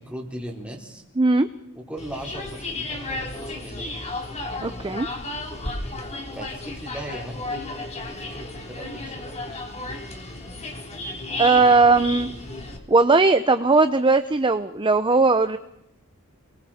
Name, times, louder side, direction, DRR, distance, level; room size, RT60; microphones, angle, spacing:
voice 1, 0.0-1.0 1.7-4.0 6.3-7.6 8.1-9.6, right 1 dB, 5° right, -1 dB, 4.3 m, -38 dB
voice 2, 1.2-1.5 4.6-5.1 11.4-12.3 12.9-15.6, right 3 dB, 20° right, 10 dB, 0.8 m, -18 dB
sound 1, 2.0-12.8, left 2 dB, 30° left, 3.7 m, -33 dB
29.0 x 22.5 x 4.4 m, 0.83 s
head